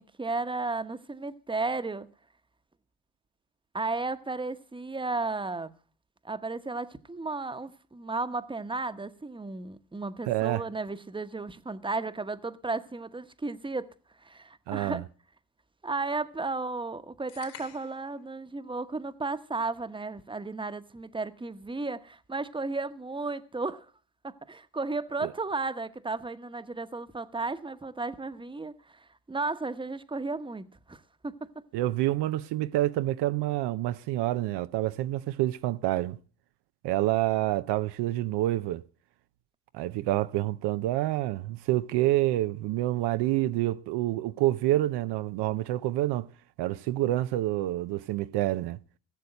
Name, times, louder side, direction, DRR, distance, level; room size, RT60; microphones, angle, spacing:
voice 1, 0.0-2.1 3.7-5.7 6.2-13.9 14.2-15.0 15.8-23.9 24.2-31.3, right 3 dB, 10° right, 1.0 m, -34 dB
voice 2, 10.3-10.6 14.7-15.0 25.2-25.3 31.7-36.2 36.8-38.8 39.7-46.3 46.6-48.8, right 15 dB, 80° right, 0.7 m, -27 dB
sound 1, 17.3-18.1, left 8 dB, 80° left, 3.7 m, -48 dB
16.5 x 7.0 x 7.8 m
supercardioid pair, 75°, 41 cm